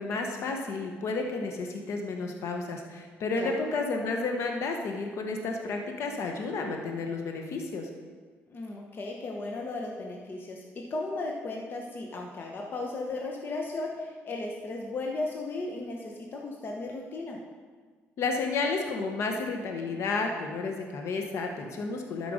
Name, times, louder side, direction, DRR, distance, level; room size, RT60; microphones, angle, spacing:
voice 1, 0.0-7.9 18.2-22.3, left 3 dB, 70° left, 3 dB, 1.2 m, -31 dB
voice 2, 8.5-17.4, left 2 dB, 45° left, 0 dB, 1.2 m, -35 dB
12.5 x 5.7 x 5.2 m, 1.5 s
cardioid pair, 100°, 5 cm